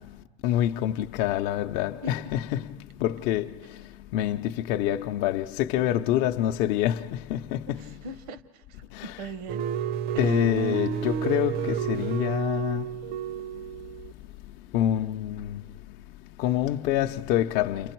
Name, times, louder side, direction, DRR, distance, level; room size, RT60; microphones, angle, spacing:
voice 1, 0.0-7.9 8.9-9.1 10.2-13.0 13.4-13.9 14.5-16.0 16.4-17.9, left 12 dB, 60° left, 0.6 m, -27 dB
voice 2, 7.7-9.7 10.1-10.4, right 2 dB, 75° right, 1.0 m, -41 dB
sound 1, 9.5-14.1, right 8 dB, 50° right, 0.6 m, -30 dB
29.5 x 27.0 x 4.5 m
cardioid pair, 145°, 20 cm